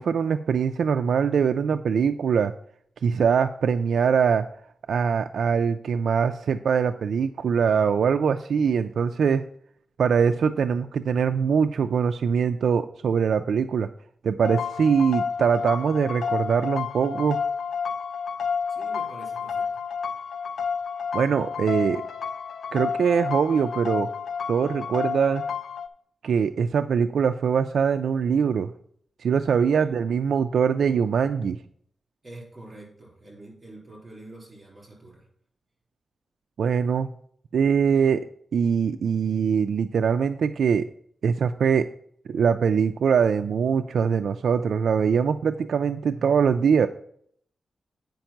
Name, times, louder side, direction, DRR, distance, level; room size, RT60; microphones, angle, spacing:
voice 1, 0.0-2.5 3.0-4.5 4.9-9.4 10.0-13.9 14.2-17.4 21.1-22.0 22.7-24.1 24.5-25.4 26.2-28.7 29.2-31.6 36.6-37.1 37.5-38.3 38.5-40.9 41.2-41.9 42.3-46.9, right 6 dB, 75° right, 8 dB, 0.3 m, -22 dB
sound 1, 14.4-25.9, left 6 dB, 70° left, 0.6 m, -30 dB
voice 2, 18.7-19.8 29.8-29.9 32.2-35.3, right 2 dB, 30° right, -2 dB, 3.7 m, -45 dB
9.0 x 5.2 x 5.8 m, 0.65 s
wide cardioid pair, 175°, 0 cm